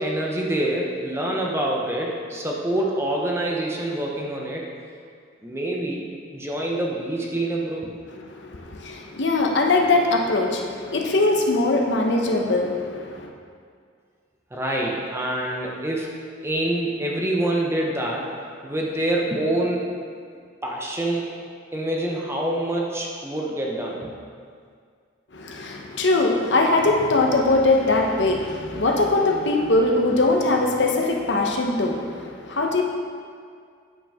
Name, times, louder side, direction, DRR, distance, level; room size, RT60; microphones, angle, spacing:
voice 1, 0.0-4.7 5.4-7.9 14.5-18.3 18.6-19.9 20.6-21.3 21.7-24.1, right 1 dB, 15° right, -2 dB, 0.9 m, -26 dB
voice 2, 8.3-13.3 25.3-32.8, left 2 dB, 65° left, 1 dB, 0.9 m, -21 dB
9.0 x 7.8 x 3.6 m, 2.1 s
head